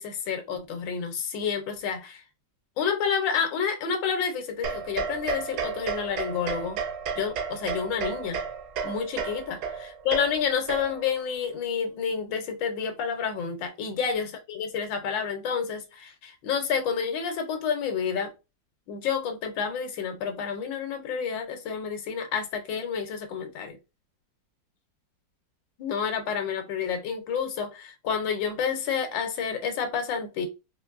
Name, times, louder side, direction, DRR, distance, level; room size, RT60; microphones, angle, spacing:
voice 1, 0.0-2.2 2.8-6.8 7.2-8.4 8.8-18.3 18.9-23.8 25.8-30.5, left 6 dB, 85° left, 1.6 m, -29 dB
sound 1, 4.6-11.2, right 6 dB, 70° right, 1.2 m, -33 dB
4.3 x 2.6 x 2.4 m
omnidirectional pair, 2.0 m